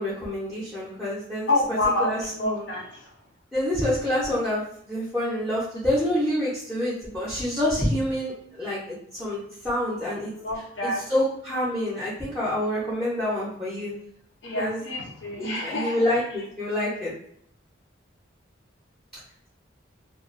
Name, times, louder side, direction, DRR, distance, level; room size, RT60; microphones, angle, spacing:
voice 1, 0.0-1.5 2.0-2.7 3.5-10.3 10.8-13.9 14.5-14.8 15.4-17.1, left 1 dB, ahead, -8 dB, 0.6 m, -27 dB
voice 2, 1.5-3.1 10.1-11.0 14.4-16.2, left 2 dB, 70° left, 0 dB, 0.6 m, -28 dB
2.3 x 2.2 x 2.5 m, 0.68 s
head